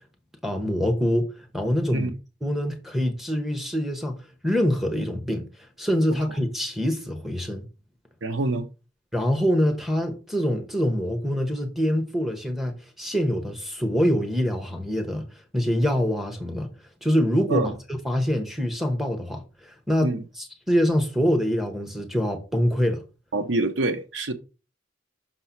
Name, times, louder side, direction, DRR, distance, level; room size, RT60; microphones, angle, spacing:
voice 1, 0.4-2.1 2.4-4.2 4.4-5.5 5.8-7.7 9.1-15.2 15.5-16.7 17.0-23.0, equal, ahead, 1.2 m, -25 dB
voice 2, 8.2-8.7 17.5-17.7 20.0-20.2 23.3-24.3, right 2 dB, 85° right, 0.9 m, -25 dB
6.1 x 3.3 x 5.8 m
head